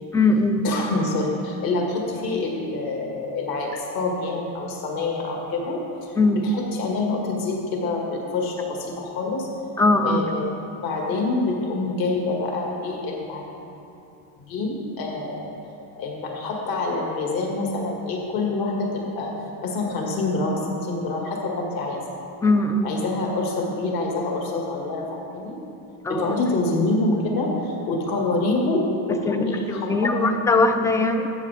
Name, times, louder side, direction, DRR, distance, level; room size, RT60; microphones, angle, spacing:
voice 1, 0.1-0.6 6.2-6.4 9.8-10.3 22.4-22.9 26.0-26.3 29.3-31.3, left 2 dB, 10° left, 7 dB, 0.4 m, -20 dB
voice 2, 0.6-5.8 6.3-9.5 10.0-10.4 10.8-13.5 14.4-15.5 16.0-19.3 19.6-22.0 22.8-25.6 26.1-30.3, left 2 dB, 55° left, -1 dB, 2.1 m, -26 dB
13.5 x 8.2 x 3.5 m, 2.7 s
cardioid pair, 115°, 42 cm